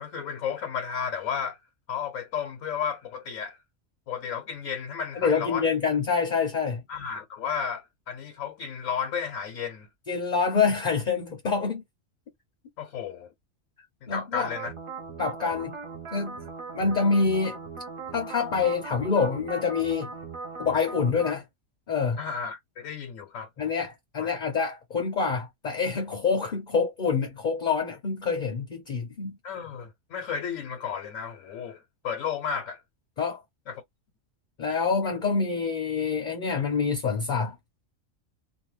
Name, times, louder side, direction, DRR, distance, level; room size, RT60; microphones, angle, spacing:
voice 1, 0.0-1.6 1.9-3.6 4.1-5.7 6.9-9.9 12.8-13.3 14.0-14.7 22.2-23.5 24.2-24.3 29.4-32.8 33.7-33.8, left 7 dB, 75° left, 1.0 m, -33 dB
voice 2, 5.2-6.8 10.1-11.8 14.1-14.5 15.2-15.7 16.1-16.4 16.7-17.6 18.1-20.1 20.6-21.4 21.9-22.2 23.6-29.4 33.2-33.4 34.6-37.5, left 5 dB, 45° left, 0.7 m, -26 dB
sound 1, 14.4-21.3, right 4 dB, 40° right, 0.5 m, -39 dB
2.7 x 2.5 x 3.1 m
omnidirectional pair, 1.4 m